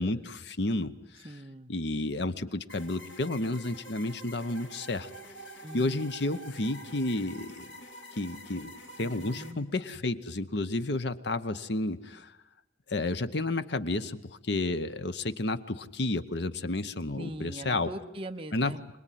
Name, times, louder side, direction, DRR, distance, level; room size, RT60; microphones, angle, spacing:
voice 1, 0.0-1.3 1.7-5.1 5.7-7.7 8.1-12.3 12.9-17.9 18.5-18.8, left 2 dB, 60° left, 12 dB, 1.0 m, -31 dB
voice 2, 1.2-1.7 5.6-6.1 9.0-9.7 17.2-18.8, right 1 dB, 30° right, 6 dB, 1.0 m, -41 dB
sound 1, 2.7-9.5, equal, 80° left, 4.3 m, -47 dB
26.5 x 20.0 x 9.3 m, 0.94 s
head